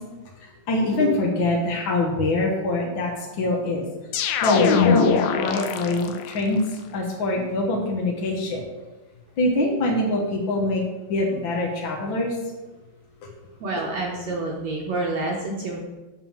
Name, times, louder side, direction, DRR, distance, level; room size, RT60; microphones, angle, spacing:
voice 1, 0.7-3.1 3.4-3.8 4.4-6.6 6.9-8.6 9.4-10.8 11.1-12.4, left 2 dB, 60° left, -1 dB, 1.3 m, -24 dB
sound 1, 4.1-6.4, left 7 dB, 85° left, 2.6 m, -22 dB
voice 2, 13.6-15.8, right 2 dB, 65° right, -2 dB, 1.9 m, -28 dB
9.0 x 4.9 x 7.2 m, 1.1 s
omnidirectional pair, 4.0 m